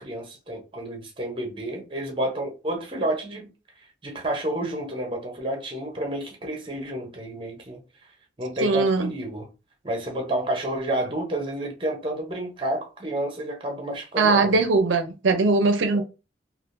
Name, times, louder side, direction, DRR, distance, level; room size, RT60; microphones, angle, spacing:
voice 1, 0.0-3.5 4.0-7.8 8.4-9.5 9.8-14.6 15.9-16.0, right 1 dB, 25° right, 0.8 m, -30 dB
voice 2, 8.6-9.1 14.2-16.0, right 3 dB, 85° right, 0.5 m, -20 dB
3.5 x 2.5 x 2.5 m
head